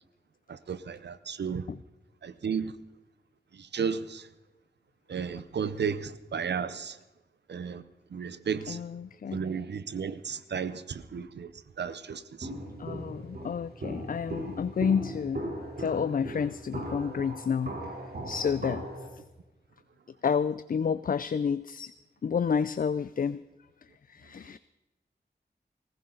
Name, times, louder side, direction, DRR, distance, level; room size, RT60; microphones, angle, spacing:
voice 1, 0.5-1.7 2.2-2.7 3.5-4.3 5.1-7.0 7.5-7.8 8.1-8.8 9.3-11.5 11.8-12.5, right 6 dB, 85° right, 0.8 m, -33 dB
voice 2, 8.7-9.4 12.8-15.5 15.8-17.8 18.3-18.8 20.2-21.9 22.2-23.4 24.1-24.6, left 6 dB, 55° left, 0.4 m, -30 dB
Walk footsteps, 12.4-19.1, right 1 dB, 65° right, 3.4 m, -38 dB
19.0 x 15.5 x 3.9 m
wide cardioid pair, 65°, 17 cm